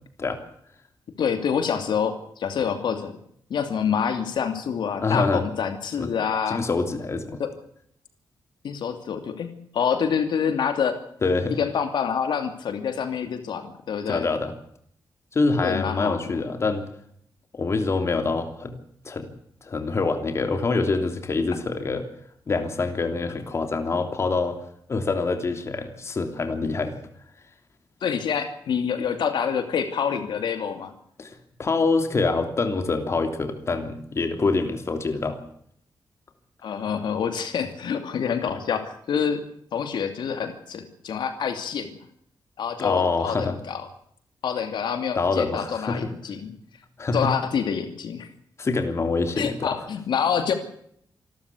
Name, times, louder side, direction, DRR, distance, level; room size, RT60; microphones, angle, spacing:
voice 1, 1.2-3.1 3.5-6.6 7.4-7.5 8.6-11.0 11.5-14.3 15.6-16.4 28.0-30.9 36.6-39.4 39.7-41.9 42.6-43.9 44.4-46.5 47.1-48.3 49.4-50.5, left 7 dB, 85° left, 7 dB, 2.7 m, -27 dB
voice 2, 5.0-5.4 6.0-6.1 6.5-7.4 11.2-11.6 14.1-14.5 15.3-16.9 17.5-18.8 19.0-19.3 19.6-22.0 22.5-24.6 24.9-26.9 31.2-31.3 31.6-35.4 42.8-43.5 45.2-46.1 47.0-47.3 48.6-49.9, left 3 dB, 35° left, 6 dB, 3.1 m, -25 dB
27.0 x 13.5 x 8.5 m, 0.67 s
wide cardioid pair, 150°, 8 cm